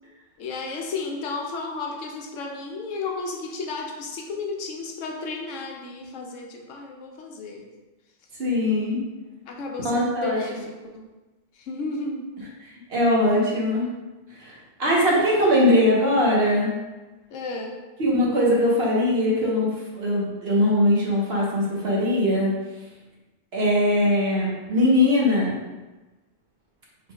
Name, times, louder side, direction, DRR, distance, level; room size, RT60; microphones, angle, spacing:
voice 1, 0.4-7.7 9.5-11.1 11.5-12.3 17.3-17.8, left 3 dB, 90° left, 1 dB, 1.0 m, -33 dB
voice 2, 8.4-9.0 9.8-10.4 12.9-13.9 14.4-14.5 14.8-16.8 18.0-22.5 23.5-25.6, left 1 dB, 55° right, -4 dB, 1.2 m, -21 dB
4.3 x 4.0 x 2.3 m, 1.1 s
omnidirectional pair, 1.3 m